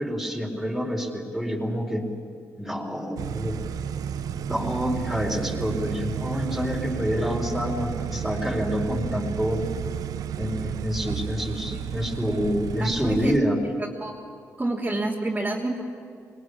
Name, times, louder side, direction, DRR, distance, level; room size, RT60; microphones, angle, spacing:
voice 1, 0.0-2.1 2.6-3.6 4.5-9.7 10.4-13.6, equal, ahead, 0 dB, 4.8 m, -27 dB
sound 1, 3.2-13.4, right 9 dB, 75° right, 0.7 m, -32 dB
voice 2, 12.8-13.3 14.0-14.1 14.6-15.8, right 2 dB, 20° right, -5 dB, 3.2 m, -28 dB
22.0 x 19.0 x 8.8 m, 2.4 s
cardioid pair, 65°, 6 cm